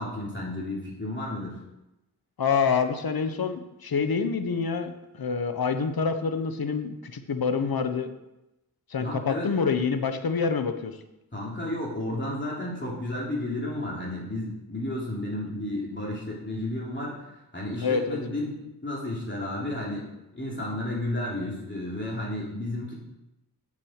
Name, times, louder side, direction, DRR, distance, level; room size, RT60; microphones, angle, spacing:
voice 1, 0.0-1.6 9.0-9.5 11.3-20.1 20.3-22.9, left 1 dB, 30° left, -5 dB, 3.4 m, -32 dB
voice 2, 2.4-8.1 8.9-11.0 17.8-18.2, left 5 dB, 65° left, 8 dB, 1.1 m, -27 dB
7.6 x 7.4 x 6.5 m, 0.93 s
cardioid pair, 50°, 38 cm